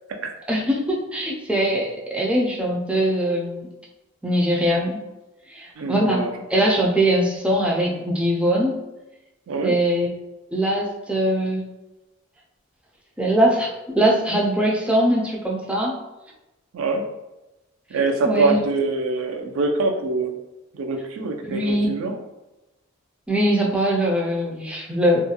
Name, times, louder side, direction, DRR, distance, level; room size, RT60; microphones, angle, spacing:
voice 1, 0.5-3.7 4.2-5.0 5.5-6.2 6.5-8.8 9.6-10.1 10.5-11.7 13.2-16.0 18.3-18.6 21.4-21.9 23.3-25.2, right 1 dB, 5° right, -3 dB, 0.3 m, -21 dB
voice 2, 5.8-6.3 9.5-9.8 16.7-17.1 17.9-20.3 20.7-22.2, right 3 dB, 75° right, 4 dB, 0.4 m, -24 dB
2.4 x 2.2 x 2.7 m, 1.0 s
head